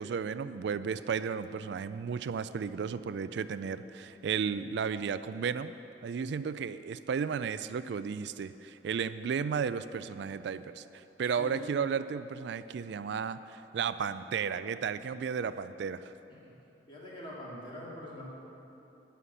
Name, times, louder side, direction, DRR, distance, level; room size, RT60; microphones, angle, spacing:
voice 1, 0.0-5.7 6.0-16.1, right 6 dB, 60° right, 13 dB, 0.3 m, -34 dB
voice 2, 11.2-11.6 16.3-16.5 16.9-18.2, left 1 dB, 25° left, -6 dB, 2.2 m, -44 dB
11.0 x 5.8 x 8.3 m, 3.0 s
head